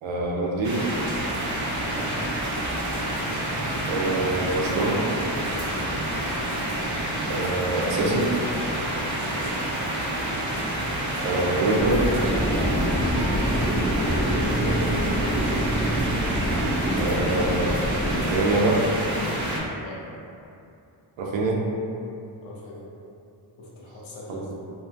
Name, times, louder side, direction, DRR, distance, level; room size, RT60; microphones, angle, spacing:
voice 1, 0.0-0.9 3.9-5.0 7.3-8.3 11.2-12.0 16.9-17.9 18.2-18.9 21.2-21.6 24.3-24.5, right 2 dB, 90° right, -2 dB, 0.6 m, -25 dB
sound 1, 0.6-19.6, right 1 dB, 40° right, 0.5 m, -28 dB
voice 2, 5.5-6.0 9.2-9.5 13.9-15.1 19.8-20.0 22.4-22.8 23.6-24.5, left 2 dB, 80° left, -5 dB, 0.7 m, -39 dB
sound 2, 11.8-18.4, equal, 5° left, 0.6 m, -26 dB
2.5 x 2.5 x 2.5 m, 2.6 s
wide cardioid pair, 115°, 45 cm